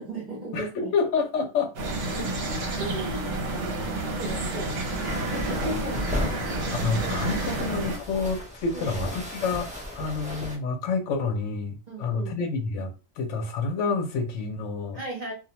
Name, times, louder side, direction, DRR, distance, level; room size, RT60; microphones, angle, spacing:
voice 1, 0.0-0.9 2.7-6.0 6.3-6.4 8.7-9.0 11.9-12.4 14.9-15.3, right 1 dB, 45° right, 0.7 m, -36 dB
voice 2, 0.5-1.7 2.2-2.3 6.7-9.7 9.9-15.0, left 4 dB, 75° left, 0.9 m, -28 dB
sound 1, 1.8-8.0, right 2 dB, 70° right, 1.0 m, -30 dB
sound 2, 5.1-10.6, left 1 dB, 10° right, 0.4 m, -34 dB
2.4 x 2.0 x 2.8 m
omnidirectional pair, 1.3 m